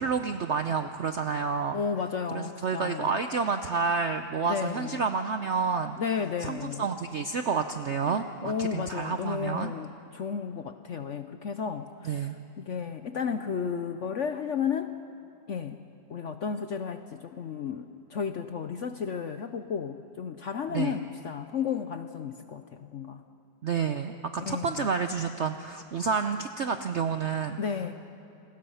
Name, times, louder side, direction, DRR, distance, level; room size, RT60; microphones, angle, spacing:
voice 1, 0.0-1.8 2.3-6.0 6.4-9.7 12.0-12.4 20.7-21.0 23.6-27.6, right 5 dB, 65° right, 8 dB, 0.7 m, -29 dB
voice 2, 1.7-3.1 4.5-5.0 6.0-6.8 8.1-14.9 15.5-15.8 16.1-23.2 24.4-24.9 27.6-27.9, left 6 dB, 60° left, 9 dB, 0.8 m, -33 dB
28.5 x 20.5 x 5.6 m, 2.9 s
omnidirectional pair, 2.0 m